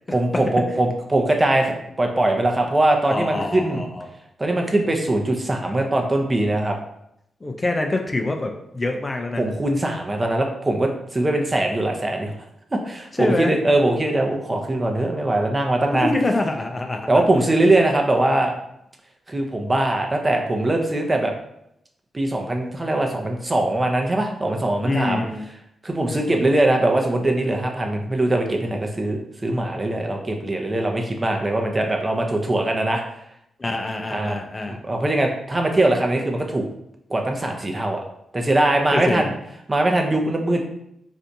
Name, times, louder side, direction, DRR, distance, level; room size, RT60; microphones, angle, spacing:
voice 1, 0.1-3.8 4.4-6.7 9.4-12.3 12.7-16.1 17.1-18.6 19.3-21.3 22.1-25.2 25.8-33.0 34.1-34.4 34.7-36.7 37.1-38.0 38.3-39.3 39.7-40.7, right 1 dB, 30° right, 2 dB, 0.7 m, -21 dB
voice 2, 3.1-4.1 7.4-9.4 13.2-13.5 16.0-17.2 24.8-25.4 33.6-34.8 38.9-39.3, left 2 dB, 30° left, 3 dB, 0.5 m, -25 dB
3.3 x 2.7 x 2.6 m, 0.78 s
supercardioid pair, 50°, 0 cm